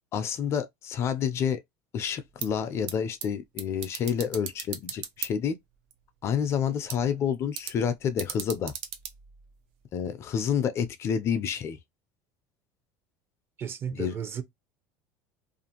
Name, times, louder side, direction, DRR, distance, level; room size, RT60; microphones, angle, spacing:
voice 1, 0.1-1.6 1.9-5.6 6.2-8.7 9.9-11.8 13.9-14.1, left 8 dB, 40° left, 0.4 m, -29 dB
sound 1, 2.2-10.1, right 9 dB, 75° right, 0.6 m, -41 dB
voice 2, 13.6-14.4, right 7 dB, 35° right, 0.6 m, -34 dB
2.5 x 2.4 x 2.8 m
supercardioid pair, 115°, 7 cm